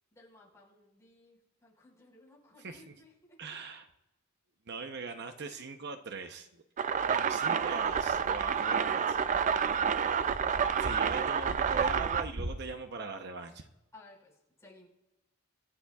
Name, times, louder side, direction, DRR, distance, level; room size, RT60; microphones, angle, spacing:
voice 1, 0.1-3.4 6.9-7.0 8.5-10.6 13.9-14.9, left 3 dB, 15° left, -4 dB, 4.8 m, -55 dB
voice 2, 2.6-2.9 3.4-3.9 4.7-6.6 7.0-9.0 10.8-13.7, right 4 dB, 55° right, 6 dB, 0.8 m, -41 dB
sound 1, 6.8-12.2, right 7 dB, 35° right, 0.4 m, -29 dB
sound 2, 7.7-12.7, right 1 dB, 75° right, 1.2 m, -42 dB
25.0 x 13.0 x 2.4 m, 0.97 s
head